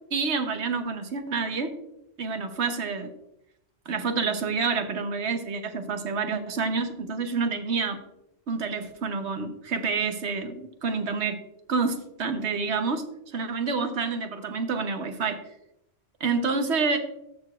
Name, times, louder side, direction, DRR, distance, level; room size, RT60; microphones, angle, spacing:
voice 1, 0.1-1.7 2.2-3.1 3.9-8.0 8.5-11.4 11.7-13.0 13.3-15.4 16.2-17.0, right 4 dB, 85° right, 7 dB, 1.2 m, -28 dB
13.5 x 6.8 x 2.4 m, 0.84 s
omnidirectional pair, 1.1 m